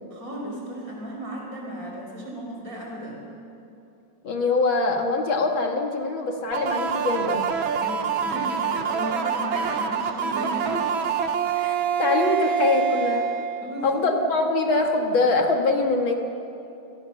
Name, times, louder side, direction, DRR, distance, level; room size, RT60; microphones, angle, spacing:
voice 1, 0.1-3.2 7.7-11.1 13.6-14.1, right 1 dB, 45° right, -1 dB, 6.0 m, -34 dB
voice 2, 4.2-7.5 11.6-13.3 13.8-16.1, left 3 dB, 80° left, 3 dB, 2.9 m, -23 dB
sound 1, 6.5-14.1, right 7 dB, 80° right, 1.9 m, -26 dB
28.5 x 21.0 x 6.7 m, 2.8 s
omnidirectional pair, 2.1 m